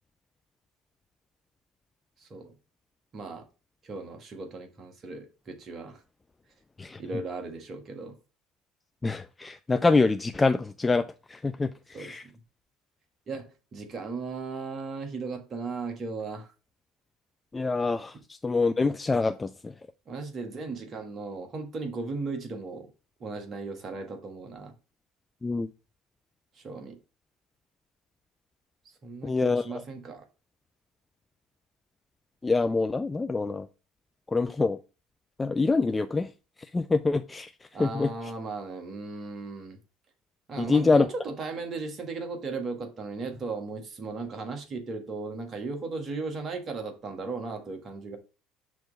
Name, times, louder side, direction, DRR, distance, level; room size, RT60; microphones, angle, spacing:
voice 1, 2.2-2.6 3.1-3.5 3.8-6.0 7.0-8.2 11.9-12.3 13.3-16.5 20.1-22.9 23.2-24.7 26.5-27.0 29.0-30.3 37.7-39.8 40.5-48.2, right 3 dB, 40° right, 1.5 m, -36 dB
voice 2, 9.0-12.2 17.5-19.7 25.4-25.7 29.2-29.8 32.4-33.7 34.3-34.8 35.4-36.3 36.6-38.1 40.6-41.1, left 3 dB, 20° left, 0.3 m, -26 dB
6.1 x 3.1 x 5.0 m
figure-of-eight pair, 60°, 0 cm